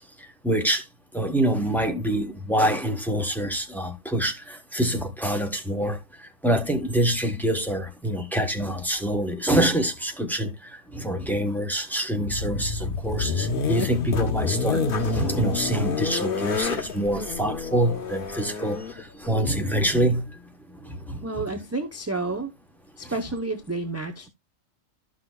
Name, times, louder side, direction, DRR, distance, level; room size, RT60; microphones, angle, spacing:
voice 1, 0.2-0.8 1.1-20.4 20.8-21.2, right 1 dB, ahead, 0.9 m, -26 dB
sound 1, 12.3-20.0, left 4 dB, 45° left, 1.1 m, -28 dB
voice 2, 21.2-22.5 23.0-24.3, right 3 dB, 15° right, 0.5 m, -30 dB
13.0 x 6.1 x 2.3 m
omnidirectional pair, 1.4 m